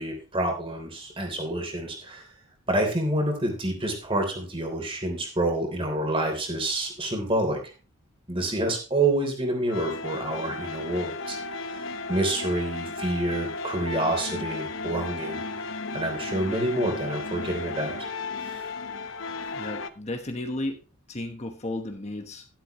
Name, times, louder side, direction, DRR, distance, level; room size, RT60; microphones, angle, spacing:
voice 1, 0.0-2.2 2.7-7.6 8.3-11.4 11.7-15.4 15.9-18.1 18.4-18.6, right 1 dB, 25° right, 3 dB, 3.3 m, -28 dB
sound 1, 9.7-19.9, left 3 dB, 65° left, 0.9 m, -34 dB
voice 2, 19.5-20.8 21.1-22.5, left 1 dB, 30° left, 5 dB, 1.1 m, -33 dB
12.0 x 11.5 x 3.1 m, 0.34 s
head